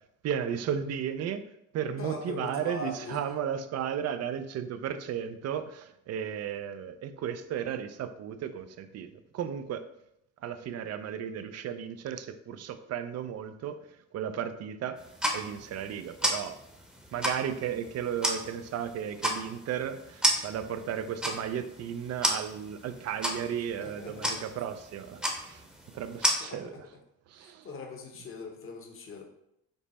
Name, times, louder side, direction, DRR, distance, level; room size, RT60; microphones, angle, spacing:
voice 1, 0.2-1.4 1.7-9.9 10.4-15.0 15.3-16.6 17.1-25.7 25.9-26.9 27.3-27.7, right 8 dB, 60° right, 10 dB, 0.4 m, -34 dB
voice 2, 2.0-3.2 23.7-24.5 26.4-26.8 27.4-29.2, left 3 dB, 45° left, 2 dB, 0.9 m, -41 dB
sound 1, 15.0-26.3, equal, 5° right, 0.8 m, -33 dB
5.3 x 2.0 x 4.1 m, 0.80 s
cardioid pair, 90°, 30 cm